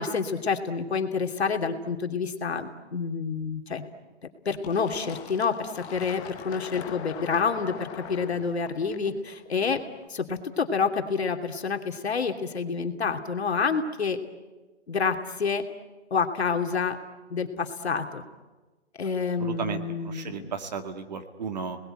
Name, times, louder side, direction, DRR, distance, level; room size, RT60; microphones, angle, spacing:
voice 1, 0.0-3.8 4.4-9.8 10.1-14.2 14.9-15.6 16.1-17.0 17.3-18.2 19.0-20.5, left 5 dB, 70° left, 5 dB, 2.9 m, -28 dB
Fill (with liquid), 4.6-10.0, left 7 dB, 10° left, 1.0 m, -41 dB
voice 2, 19.4-21.8, right 5 dB, 40° right, 7 dB, 2.1 m, -34 dB
29.5 x 20.5 x 9.1 m, 1.2 s
hypercardioid pair, 170°, 33 cm